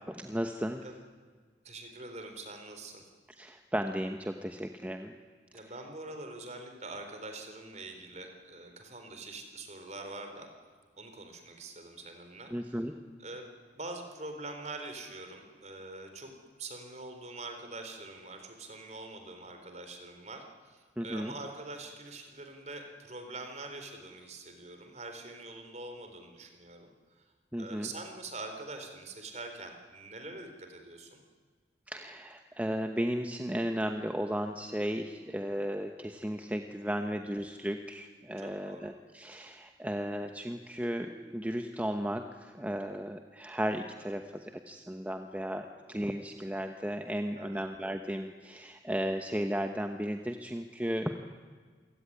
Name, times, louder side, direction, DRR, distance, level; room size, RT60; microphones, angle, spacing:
voice 1, 0.1-0.8 3.4-5.1 12.5-13.0 21.0-21.3 27.5-27.9 31.9-51.1, equal, 10° right, 5 dB, 1.0 m, -35 dB
voice 2, 1.6-3.0 5.5-10.5 11.0-12.8 13.2-13.5 13.8-16.3 16.6-26.9 27.2-27.3 27.6-31.2 37.0-37.1 38.4-38.9 47.4-47.6, right 2 dB, 40° right, 5 dB, 4.0 m, -44 dB
27.5 x 17.0 x 9.9 m, 1.5 s
head